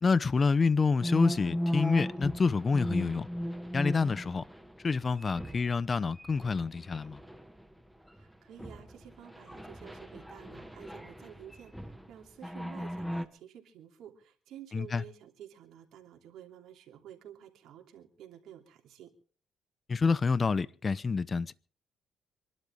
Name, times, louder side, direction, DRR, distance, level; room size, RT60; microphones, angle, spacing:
voice 1, 0.0-3.3 3.7-4.4 4.8-7.2 14.7-15.0 19.9-21.5, left 4 dB, 35° left, 0.8 m, -28 dB
sound 1, 1.0-5.8 6.2-7.7 8.1-8.2 8.6-12.1 12.4-13.2, equal, ahead, 1.4 m, -37 dB
voice 2, 8.1-19.1, right 10 dB, 85° right, 3.0 m, -51 dB
26.0 x 12.0 x 3.6 m
cardioid pair, 90°, 0 cm